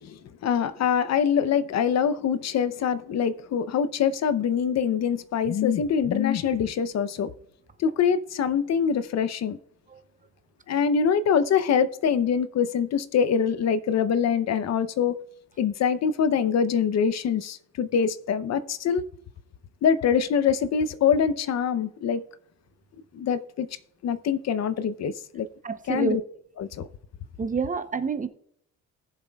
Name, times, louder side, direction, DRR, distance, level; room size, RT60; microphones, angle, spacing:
voice 1, 0.0-7.3 7.8-9.6 10.7-15.2 15.6-19.0 19.8-22.2 23.1-23.7 24.0-25.5 25.9-26.2 26.6-26.9, left 7 dB, 55° left, 0.6 m, -24 dB
voice 2, 25.6-26.2 27.4-28.3, right 5 dB, 25° right, 0.6 m, -28 dB
19.0 x 7.1 x 2.3 m
cardioid pair, 160°, 33 cm